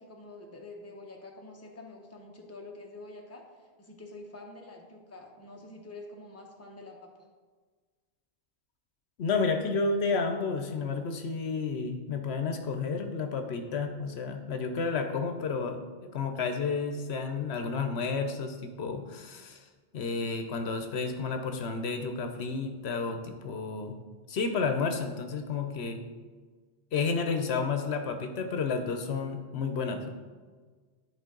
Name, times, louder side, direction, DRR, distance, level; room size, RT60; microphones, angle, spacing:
voice 1, 0.0-7.1, left 2 dB, 15° left, 1 dB, 0.8 m, -47 dB
voice 2, 9.2-19.6 19.9-23.9 24.3-26.0 26.9-30.1, left 4 dB, 75° left, 6 dB, 0.9 m, -31 dB
11.0 x 4.6 x 3.8 m, 1.5 s
omnidirectional pair, 1.1 m